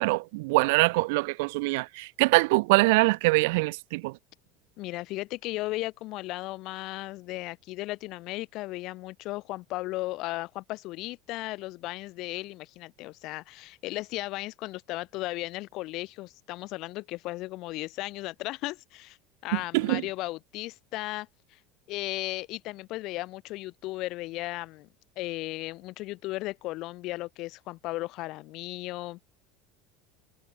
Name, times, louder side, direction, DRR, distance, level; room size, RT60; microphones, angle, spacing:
voice 1, 0.0-4.1 19.7-20.0, right 25 dB, 80° right, 0.5 m, -23 dB
voice 2, 4.8-19.2 19.4-21.6 21.9-24.9 25.2-29.2, left 19 dB, 60° left, 3.9 m, -36 dB
supercardioid pair, 125°, 0 cm